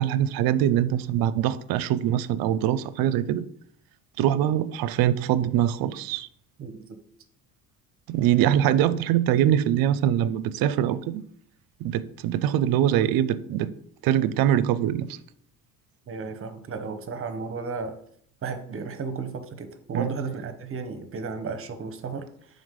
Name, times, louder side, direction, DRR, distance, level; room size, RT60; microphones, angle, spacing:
voice 1, 0.0-3.4 4.2-6.3 8.1-11.2 11.8-13.7 14.0-15.2 19.9-20.1, right 11 dB, 65° right, 0.5 m, -23 dB
voice 2, 6.6-7.0 16.1-17.9 18.4-22.3, right 4 dB, 35° right, 0.8 m, -34 dB
5.2 x 3.8 x 5.1 m
cardioid pair, 100°, 38 cm